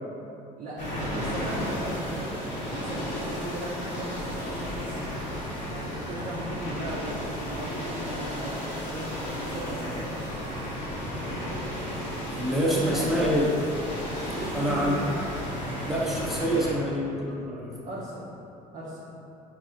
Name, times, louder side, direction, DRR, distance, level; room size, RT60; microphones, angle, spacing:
voice 1, 0.5-5.1 5.7-10.6 12.8-13.6 14.3-15.3 17.9-18.2 18.7-19.1, right 1 dB, 40° right, -6 dB, 0.6 m, -37 dB
sound 1, 0.8-16.7, equal, 65° left, 1.3 m, -33 dB
voice 2, 5.8-6.1 12.3-13.5 14.5-15.0 15.9-17.7, equal, ahead, -6 dB, 0.8 m, -27 dB
4.0 x 2.7 x 2.5 m, 2.8 s
hypercardioid pair, 65°, 21 cm